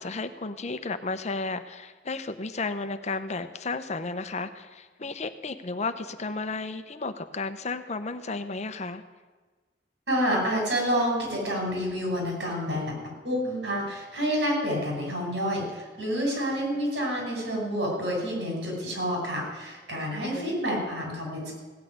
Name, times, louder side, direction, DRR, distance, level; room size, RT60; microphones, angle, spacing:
voice 1, 0.0-9.0 20.2-20.5, left 3 dB, 40° left, 10 dB, 0.8 m, -33 dB
voice 2, 10.1-13.0 13.2-21.5, equal, 80° right, 0 dB, 5.7 m, -28 dB
16.5 x 6.5 x 9.3 m, 1.3 s
head